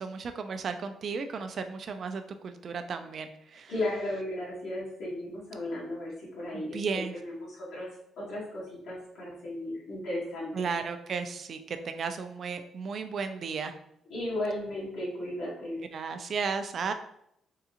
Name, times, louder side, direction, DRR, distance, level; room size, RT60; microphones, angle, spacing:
voice 1, 0.0-3.7 6.5-7.1 10.5-13.7 15.9-16.9, right 5 dB, 55° right, 8 dB, 0.4 m, -34 dB
voice 2, 3.7-10.7 14.1-15.8, left 1 dB, 80° left, -8 dB, 1.4 m, -35 dB
3.7 x 2.4 x 2.8 m, 0.74 s
cardioid pair, 105°, 0 cm